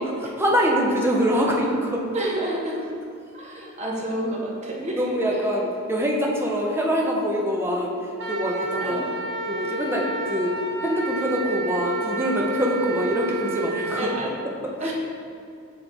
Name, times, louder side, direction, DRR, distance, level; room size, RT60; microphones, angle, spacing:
voice 1, 0.2-2.0 5.0-7.9 8.3-9.0 9.5-10.5 10.8-14.1 14.6-14.9, equal, 10° right, -2 dB, 0.6 m, -24 dB
voice 2, 2.1-2.8 3.3-5.1 8.8-9.0 14.0-14.3 14.8-14.9, right 1 dB, 35° right, -4 dB, 0.9 m, -29 dB
Wind instrument woodwind instrument, 8.2-14.2, right 2 dB, 60° right, 0.8 m, -30 dB
8.0 x 3.0 x 3.8 m, 2.4 s
head